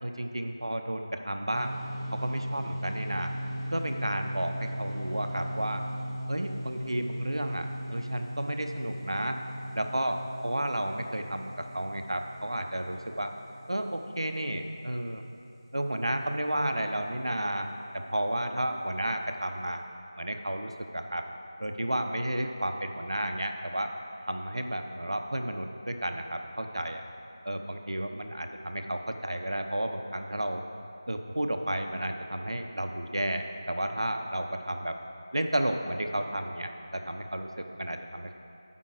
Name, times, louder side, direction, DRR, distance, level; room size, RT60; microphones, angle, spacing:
voice 1, 0.0-1.7 2.1-3.3 3.7-5.8 6.3-9.4 9.7-13.3 13.7-15.2 15.7-19.8 20.2-21.3 21.6-23.9 24.3-27.0 27.4-30.6 31.1-35.0 35.3-38.3, right 1 dB, 75° right, 5 dB, 0.8 m, -32 dB
sound 1, 1.5-15.0, equal, 5° right, 0.3 m, -38 dB
9.3 x 4.6 x 6.5 m, 2.5 s
figure-of-eight pair, 180°, 3 cm